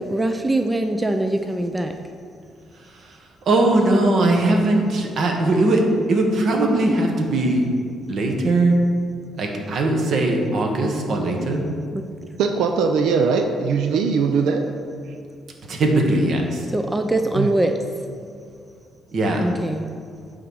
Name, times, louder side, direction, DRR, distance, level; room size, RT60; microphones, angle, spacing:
voice 1, 0.0-1.9 11.9-12.0 16.7-17.8 19.4-19.9, right 1 dB, 10° right, 6 dB, 0.4 m, -22 dB
voice 2, 2.8-3.2 3.4-5.8 6.1-7.6 8.1-8.8 9.3-11.7 15.7-16.7 19.1-19.4, right 2 dB, 50° right, 2 dB, 1.2 m, -20 dB
voice 3, 12.4-14.6 17.3-17.5, right 5 dB, 80° right, 5 dB, 0.5 m, -20 dB
8.8 x 4.0 x 6.3 m, 2.3 s
cardioid pair, 130°, 0 cm